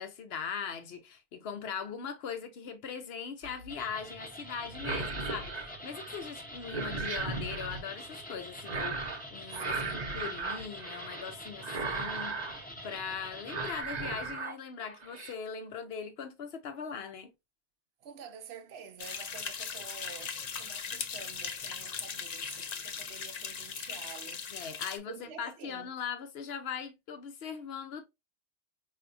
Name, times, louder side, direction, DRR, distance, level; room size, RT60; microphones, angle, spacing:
voice 1, 0.0-12.4 12.8-17.3 24.5-28.1, left 6 dB, 70° left, 0.9 m, -40 dB
sound 1, 3.4-3.8 4.7-6.2 6.5-7.8 8.7-9.2 9.5-11.3 11.6-12.6 13.0-13.2 13.5-14.5 14.9-15.3, right 3 dB, 45° right, 0.8 m, -36 dB
sound 2, 3.7-13.8, equal, 10° left, 0.7 m, -46 dB
voice 2, 9.5-10.2 18.0-24.7 25.1-25.9, right 7 dB, 75° right, 0.9 m, -49 dB
sound 3, 19.0-25.0, left 6 dB, 50° left, 0.5 m, -39 dB
4.5 x 2.7 x 2.5 m
omnidirectional pair, 1.1 m